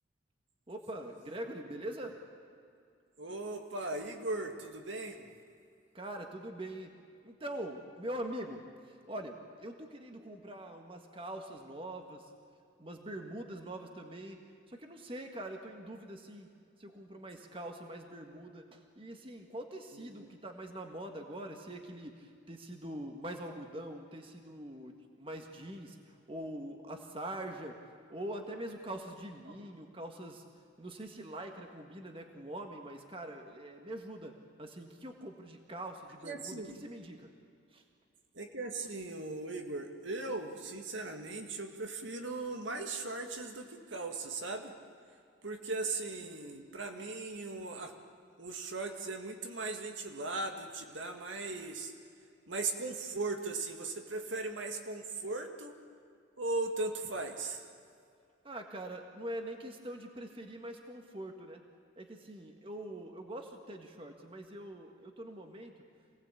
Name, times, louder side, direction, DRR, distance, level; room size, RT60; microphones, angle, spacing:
voice 1, 0.7-2.2 5.9-6.9 7.2-12.3 12.8-14.4 14.7-16.5 16.8-34.3 34.6-37.3 37.7-37.8 58.4-61.6 62.0-65.7, right 1 dB, 30° right, 4 dB, 1.7 m, -43 dB
voice 2, 3.2-5.3 19.9-20.3 36.2-36.8 38.3-44.7 45.4-47.9 48.4-51.9 52.5-55.7 56.4-57.6, right 3 dB, 75° right, 4 dB, 2.1 m, -38 dB
27.0 x 18.5 x 8.5 m, 2.4 s
head